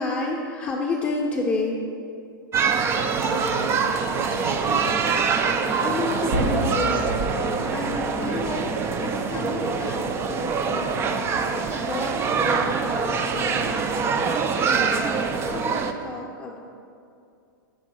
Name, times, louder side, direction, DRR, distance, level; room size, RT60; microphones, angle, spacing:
voice 1, 0.0-1.8 5.5-7.0 7.7-8.7 9.0-11.2 11.7-16.6, left 3 dB, 15° left, -3 dB, 0.6 m, -31 dB
sound 1, 2.5-15.9, right 5 dB, 20° right, 0.4 m, -24 dB
voice 2, 2.9-4.9, right 5 dB, 80° right, 8 dB, 0.5 m, -34 dB
sound 2, 6.3-14.3, right 1 dB, 65° right, 0.9 m, -34 dB
5.4 x 4.0 x 6.0 m, 2.4 s
hypercardioid pair, 110°, 11 cm